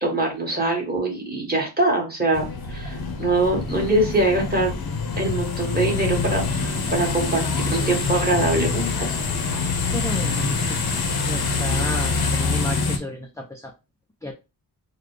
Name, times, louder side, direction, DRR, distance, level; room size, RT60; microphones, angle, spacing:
voice 1, 0.0-4.8 5.1-9.2, right 2 dB, 20° right, -1 dB, 1.6 m, -23 dB
sound 1, 2.3-13.0, left 4 dB, 65° left, 0.8 m, -25 dB
voice 2, 9.9-10.8 11.3-13.7 14.2-14.3, left 1 dB, 10° left, 2 dB, 0.5 m, -32 dB
3.9 x 2.3 x 3.2 m, 0.27 s
wide cardioid pair, 90°, 40 cm